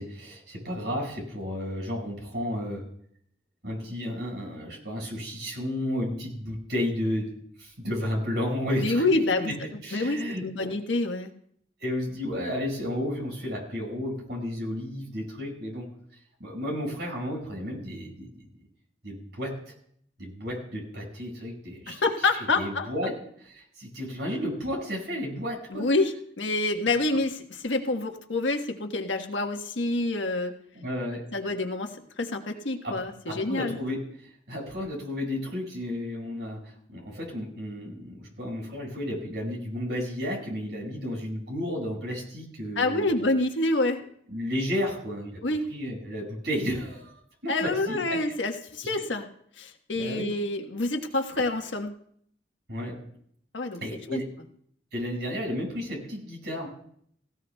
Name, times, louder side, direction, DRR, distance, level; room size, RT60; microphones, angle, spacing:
voice 1, 0.0-2.8 3.6-7.3 7.6-9.0 9.4-9.5 9.8-10.8 11.8-15.9 16.4-18.5 19.0-19.7 20.2-22.0 22.6-25.9 30.7-31.2 32.8-32.9 33.3-34.0 34.5-43.1 44.3-45.4 45.7-48.2 49.0-49.1 49.9-50.3 52.7-52.9 53.8-54.3 54.9-56.7, equal, 65° right, -1 dB, 5.8 m, -32 dB
voice 2, 8.8-9.5 9.9-11.3 21.9-23.1 25.7-30.5 31.3-33.8 42.8-44.0 45.4-45.6 47.5-49.2 49.6-51.9 53.5-53.8 54.1-54.2, left 2 dB, 90° left, 4 dB, 1.3 m, -27 dB
18.0 x 16.5 x 2.3 m, 0.65 s
head